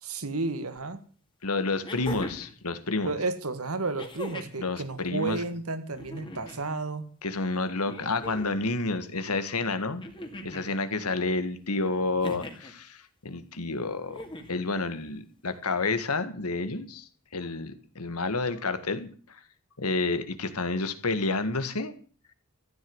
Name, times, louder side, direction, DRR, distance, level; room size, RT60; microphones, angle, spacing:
voice 1, 0.0-1.0 3.0-7.1, right 3 dB, 75° right, 11 dB, 1.9 m, -32 dB
sound 1, 0.8-0.9 1.8-2.6 4.0-4.6 5.9-6.6 7.9-8.7 10.0-10.7 12.2-12.7 14.1-14.6 16.0-16.1, left 1 dB, 25° left, 2.4 m, -40 dB
voice 2, 1.4-3.1 4.6-5.4 7.2-10.0 10.4-14.2 14.5-19.4 19.8-21.9, left 3 dB, 90° left, 11 dB, 1.9 m, -30 dB
14.5 x 9.5 x 8.1 m, 0.41 s
head